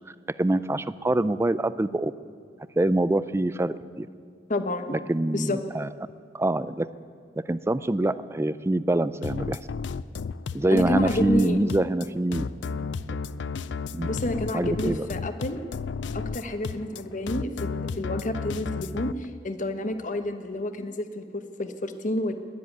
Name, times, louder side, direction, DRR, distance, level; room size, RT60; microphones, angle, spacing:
voice 1, 0.4-2.1 2.8-4.1 4.9-5.9 6.3-6.9 7.4-9.6 10.5-12.5 13.9-14.1 14.5-15.0, right 1 dB, 15° right, 15 dB, 0.4 m, -25 dB
voice 2, 4.5-5.0 5.3-5.6 10.7-11.6 14.0-15.6 16.1-22.3, left 1 dB, 45° left, 8 dB, 1.1 m, -30 dB
sound 1, 9.2-19.1, left 5 dB, 75° left, 0.4 m, -33 dB
20.0 x 7.7 x 9.4 m, 2.1 s
head